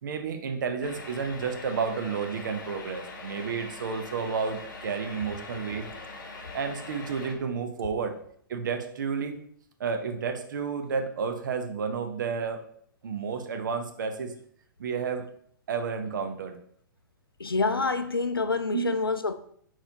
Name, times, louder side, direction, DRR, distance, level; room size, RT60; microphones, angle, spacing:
voice 1, 0.0-5.9 6.5-8.1 8.5-9.4 9.8-12.6 13.0-14.3 14.8-15.3 15.7-16.6 18.7-18.9, right 5 dB, 60° right, 0.7 m, -31 dB
sound 1, 0.8-7.3, left 3 dB, 60° left, 0.9 m, -42 dB
voice 2, 17.4-19.3, left 3 dB, 90° left, 0.4 m, -27 dB
4.4 x 4.0 x 2.8 m
figure-of-eight pair, 115°, 12 cm